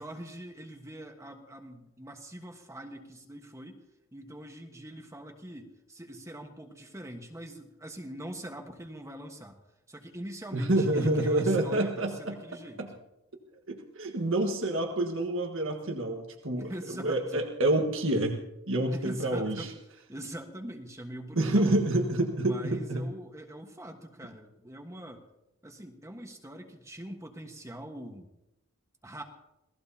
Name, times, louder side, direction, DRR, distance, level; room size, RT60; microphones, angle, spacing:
voice 1, 0.0-3.8 4.1-9.6 9.9-13.0 16.5-17.4 18.9-19.7 20.1-21.8 22.4-25.2 25.6-28.3 29.0-29.2, right 1 dB, 15° right, 2 dB, 1.4 m, -43 dB
voice 2, 10.5-12.4 12.8-12.9 13.7-16.7 17.0-18.4 18.7-19.7 21.4-23.1, right 1 dB, 65° right, 2 dB, 1.6 m, -27 dB
27.5 x 18.5 x 2.9 m, 0.88 s
head